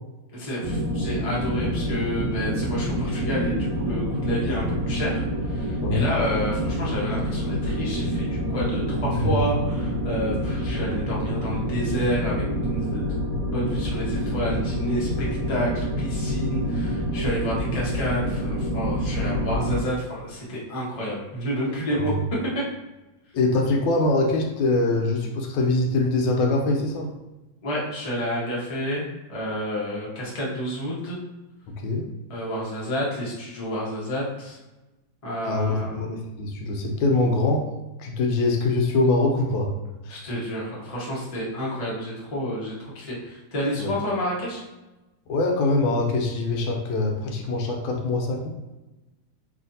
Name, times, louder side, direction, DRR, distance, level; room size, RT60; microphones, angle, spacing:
voice 1, 0.3-13.2 13.5-22.1 22.5-22.6 27.6-31.2 32.3-34.6 35.2-36.1 40.1-44.6, equal, 50° left, -5 dB, 0.4 m, -30 dB
sound 1, 0.6-19.8, equal, 65° right, 1.2 m, -27 dB
voice 2, 23.3-27.1 31.8-32.1 35.4-37.7 38.0-39.7 40.0-40.2 43.8-43.9 45.3-48.5, left 2 dB, 85° left, 1 dB, 1.4 m, -23 dB
3.3 x 2.5 x 2.6 m, 1.1 s
omnidirectional pair, 2.1 m